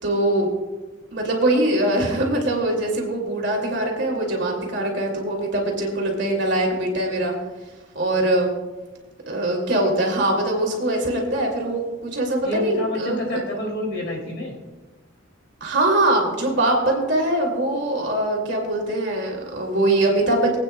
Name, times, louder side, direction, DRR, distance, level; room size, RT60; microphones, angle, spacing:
voice 1, 0.0-0.5 1.1-7.3 7.9-8.5 9.3-13.4 15.6-20.6, right 1 dB, 60° right, 0 dB, 2.6 m, -22 dB
voice 2, 12.4-14.5, left 1 dB, 55° left, -1 dB, 2.9 m, -28 dB
24.0 x 8.9 x 2.3 m, 1.2 s
head